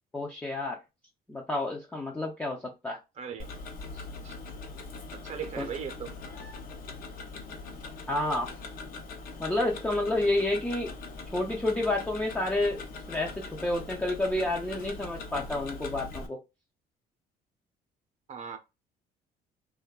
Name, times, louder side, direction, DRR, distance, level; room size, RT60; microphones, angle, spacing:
voice 1, 0.1-0.8 1.3-3.0 5.6-5.7 8.1-8.5 9.4-10.9 11.3-12.8 13.1-13.3 13.6-16.4, left 2 dB, 10° left, 0.4 m, -29 dB
voice 2, 3.2-3.5 4.2-4.4 5.1-6.2 18.3-18.6, right 7 dB, 40° right, 0.6 m, -38 dB
Tick-tock, 3.4-16.3, left 3 dB, 55° left, 0.6 m, -42 dB
2.5 x 2.2 x 2.2 m
cardioid pair, 110°, 17 cm